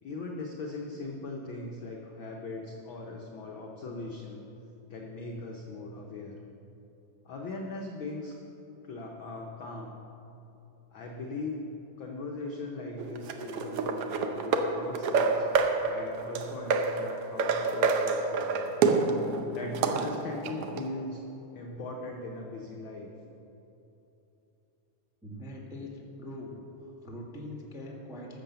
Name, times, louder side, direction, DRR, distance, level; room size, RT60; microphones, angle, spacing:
voice 1, 0.0-4.4 4.9-6.4 7.2-8.3 8.8-9.9 10.9-11.7 12.0-15.5 15.8-18.8 19.5-21.2 21.5-23.1, left 2 dB, 75° left, 0 dB, 1.1 m, -39 dB
sound 1, 13.0-20.9, right 4 dB, 75° right, 1.4 m, -28 dB
voice 2, 25.2-25.9 26.2-28.4, left 1 dB, 5° right, -1 dB, 0.6 m, -42 dB
13.0 x 7.1 x 6.8 m, 3.0 s
omnidirectional pair, 3.4 m